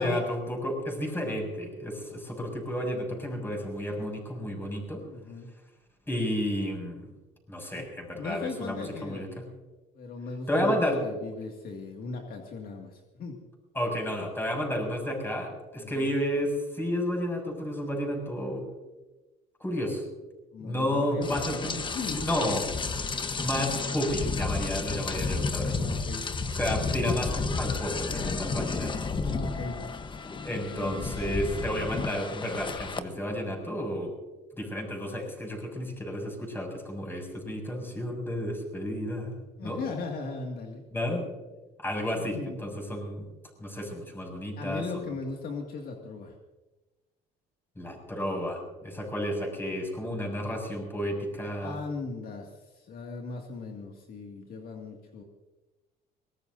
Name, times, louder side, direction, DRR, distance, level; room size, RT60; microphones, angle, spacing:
voice 1, 0.0-5.0 6.1-7.0 7.5-9.3 10.5-11.0 13.8-18.6 19.6-20.1 20.6-21.7 22.1-22.6 23.4-25.8 26.5-28.9 30.4-34.1 34.6-39.3 39.6-39.8 40.9-41.2 41.8-43.3 43.6-45.0 47.8-51.8, equal, 15° left, 1 dB, 6.9 m, -31 dB
voice 2, 5.1-5.5 7.7-7.9 8.1-9.3 9.9-13.4 15.8-16.2 20.5-22.3 25.7-26.3 29.2-29.8 30.6-31.3 39.6-40.8 42.3-42.6 44.6-46.4 51.6-55.2, left 4 dB, 60° left, 1 dB, 2.2 m, -38 dB
Rain, 21.2-33.0, left 4 dB, 30° left, 1.1 m, -32 dB
23.0 x 20.0 x 2.7 m, 1.1 s
cardioid pair, 110°, 17 cm